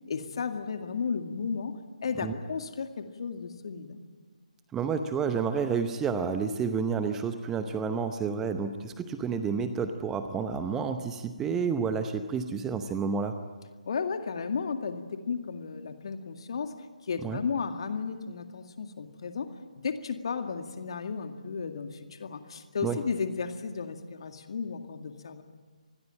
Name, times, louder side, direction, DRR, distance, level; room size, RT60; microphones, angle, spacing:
voice 1, 0.1-1.7 2.0-4.0 13.9-16.7 17.1-19.5 19.8-25.4, left 5 dB, 40° left, 7 dB, 2.1 m, -34 dB
voice 2, 4.7-13.4 17.2-17.4 22.8-23.0, right 6 dB, 10° right, 8 dB, 0.8 m, -30 dB
27.0 x 20.0 x 8.9 m, 1.4 s
figure-of-eight pair, 145°, 4 cm